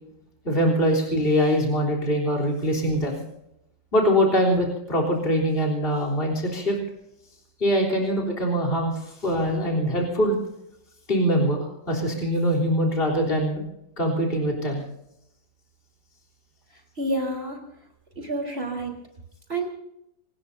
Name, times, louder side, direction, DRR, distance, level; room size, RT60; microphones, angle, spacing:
voice 1, 0.4-3.2 3.9-6.8 7.6-10.4 11.1-13.6 14.0-14.8, equal, 30° left, -1 dB, 3.9 m, -23 dB
voice 2, 17.0-17.6 18.2-18.9 19.5-19.7, right 1 dB, 35° right, 2 dB, 4.2 m, -28 dB
26.5 x 19.5 x 2.7 m, 0.82 s
omnidirectional pair, 1.9 m